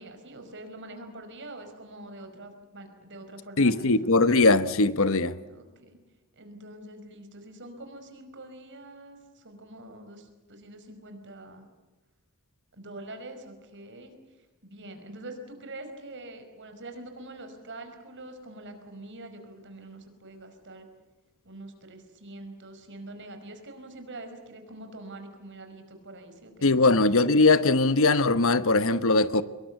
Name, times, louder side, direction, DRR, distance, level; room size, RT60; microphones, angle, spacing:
voice 1, 0.0-4.1 5.5-6.0 6.3-11.7 12.7-14.1 14.6-20.9 21.4-27.0, right 2 dB, 55° right, 6 dB, 5.1 m, -44 dB
voice 2, 3.6-5.4 26.6-29.4, left 3 dB, 65° left, 13 dB, 1.1 m, -21 dB
24.5 x 22.5 x 8.2 m, 1.1 s
head